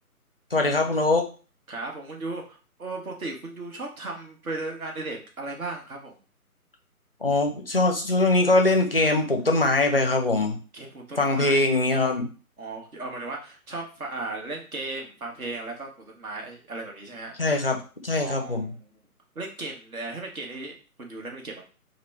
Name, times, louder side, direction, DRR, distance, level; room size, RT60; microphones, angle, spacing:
voice 1, 0.5-1.3 7.2-10.6 11.2-12.3 17.4-18.7, left 2 dB, 40° left, 3 dB, 0.4 m, -22 dB
voice 2, 1.7-6.2 10.7-11.8 12.6-17.3 18.2-18.9 19.3-21.6, right 2 dB, 65° right, 1 dB, 1.2 m, -36 dB
3.1 x 2.2 x 3.1 m, 0.36 s
figure-of-eight pair, 150°, 46 cm